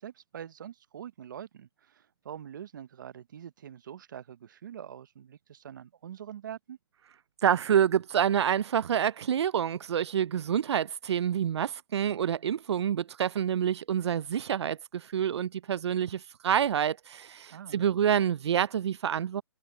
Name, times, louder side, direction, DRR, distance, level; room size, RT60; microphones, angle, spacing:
voice 1, 0.0-6.8 17.5-17.9, right 9 dB, 45° right, 0.7 m, -44 dB
voice 2, 7.4-19.4, right 9 dB, 90° right, 0.4 m, -27 dB
hypercardioid pair, 170°, 14 cm